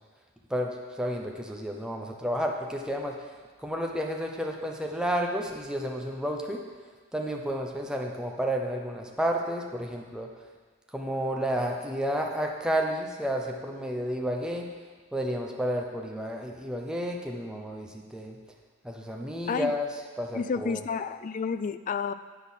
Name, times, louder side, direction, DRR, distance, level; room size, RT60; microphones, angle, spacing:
voice 1, 0.5-3.2 3.6-6.6 7.1-10.3 10.9-14.7 15.1-18.4 18.8-19.9 20.2-20.8, equal, 5° right, 1 dB, 0.8 m, -31 dB
voice 2, 20.3-22.1, left 5 dB, 40° left, 12 dB, 0.3 m, -30 dB
8.4 x 5.6 x 5.7 m, 1.5 s
head